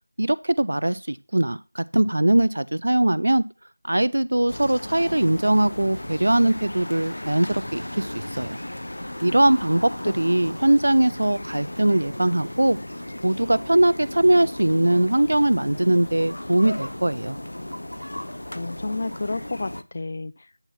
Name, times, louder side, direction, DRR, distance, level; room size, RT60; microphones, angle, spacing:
voice 1, 0.2-3.4 3.8-8.6 9.2-12.8 13.2-17.4, right 1 dB, 60° right, 0.5 m, -21 dB
sound 1, 4.5-19.8, left 1 dB, 70° left, 0.9 m, -35 dB
voice 2, 18.5-20.5, left 3 dB, 35° left, 0.3 m, -31 dB
8.9 x 4.3 x 5.5 m
figure-of-eight pair, 175°, 0 cm